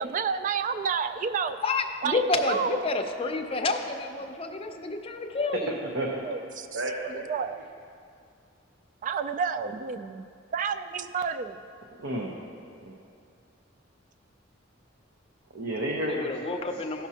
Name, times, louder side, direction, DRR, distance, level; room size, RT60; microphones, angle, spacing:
voice 1, 0.0-1.6 2.0-2.2 2.5-2.8 6.2-7.6 9.0-10.3 10.5-11.6, right 6 dB, 40° right, 10 dB, 0.3 m, -30 dB
voice 2, 1.6-5.8 16.1-17.1, left 3 dB, 30° left, 4 dB, 0.6 m, -29 dB
voice 3, 5.9-6.2 6.8-6.9 12.0-12.3 12.8-12.9 15.5-16.6, right 1 dB, 70° right, -1 dB, 0.8 m, -31 dB
14.5 x 6.0 x 2.8 m, 2.4 s
head